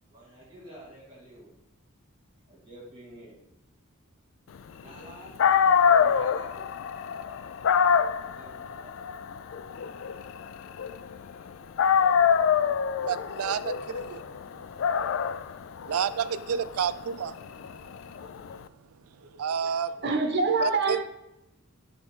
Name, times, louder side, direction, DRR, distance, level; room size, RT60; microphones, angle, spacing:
voice 1, 0.1-1.5 2.5-3.4 4.8-5.3 6.0-6.7 8.3-8.9, right 1 dB, 25° right, 2.3 m, -48 dB
Dog, 5.1-5.2 5.4-11.4 11.8-18.6, left 7 dB, 60° left, 0.3 m, -25 dB
voice 2, 13.0-14.2 15.9-17.4 19.4-19.9 20.6-21.0, right 7 dB, 90° right, 0.4 m, -29 dB
voice 3, 20.0-21.0, right 3 dB, 50° right, 0.9 m, -25 dB
10.0 x 3.4 x 3.7 m
head